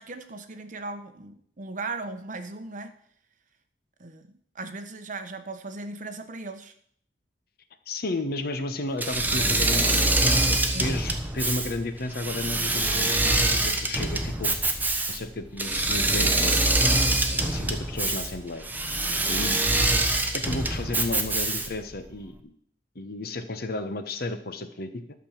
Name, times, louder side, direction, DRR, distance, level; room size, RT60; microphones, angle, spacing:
voice 1, 0.0-2.9 4.0-4.3 4.5-6.7 10.7-10.9 19.5-19.6, right 3 dB, 45° right, 8 dB, 1.1 m, -37 dB
voice 2, 7.9-14.5 15.1-16.6 17.3-18.7 19.3-19.6 20.3-22.5 22.9-25.0, left 2 dB, 60° left, 9 dB, 1.1 m, -33 dB
Engine / Mechanisms, 9.0-21.9, right 2 dB, 10° right, 1.1 m, -24 dB
12.0 x 6.3 x 7.4 m, 0.63 s
head